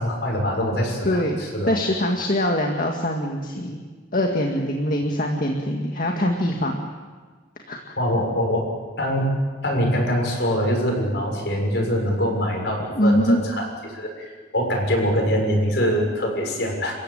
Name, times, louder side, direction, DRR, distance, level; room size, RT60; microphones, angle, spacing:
voice 1, 0.0-1.8 8.0-8.7 9.0-9.3 9.6-16.9, equal, 65° left, 1 dB, 6.7 m, -24 dB
voice 2, 1.0-3.8 4.1-6.9 7.7-7.8 12.9-13.4, left 1 dB, 50° left, 2 dB, 2.0 m, -23 dB
29.0 x 15.5 x 9.0 m, 1.4 s
head